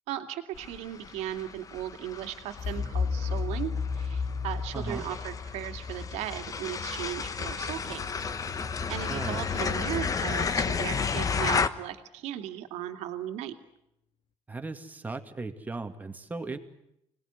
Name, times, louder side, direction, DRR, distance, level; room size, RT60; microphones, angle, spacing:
voice 1, 0.1-8.2 8.5-8.6 8.9-13.5, right 12 dB, 80° right, 6 dB, 2.4 m, -37 dB
sound 1, 0.6-11.7, left 5 dB, 30° left, 1.2 m, -32 dB
sound 2, 2.6-7.5, left 5 dB, 50° left, 2.4 m, -33 dB
voice 2, 4.7-5.0 9.1-9.4 14.5-16.6, right 3 dB, 15° right, 5 dB, 2.4 m, -37 dB
26.5 x 20.0 x 9.7 m, 0.80 s
cardioid pair, 120°, 11 cm